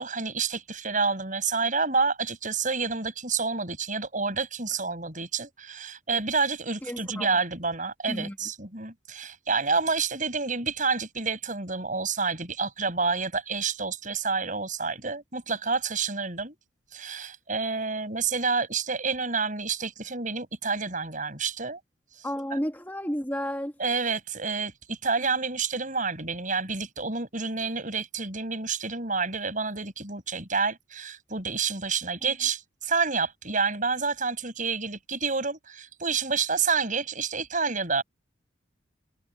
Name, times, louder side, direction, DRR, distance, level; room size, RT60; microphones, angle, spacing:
voice 1, 0.0-16.6 16.9-21.8 22.2-22.3 23.8-38.0, right 4 dB, 40° right, 7.0 m, -29 dB
voice 2, 6.8-7.4 8.1-8.4 22.2-23.7 32.3-32.4, equal, 10° left, 2.4 m, -32 dB
head